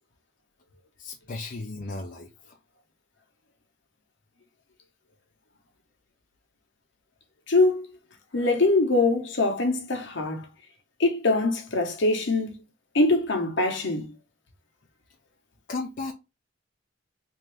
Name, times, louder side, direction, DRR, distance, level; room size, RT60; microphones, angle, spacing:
voice 1, 1.0-2.6 15.7-16.1, left 3 dB, 45° left, 0.6 m, -35 dB
voice 2, 7.5-7.9 8.3-10.4 11.0-12.5 12.9-14.1, left 2 dB, 65° left, 1.0 m, -23 dB
3.5 x 2.7 x 3.2 m
head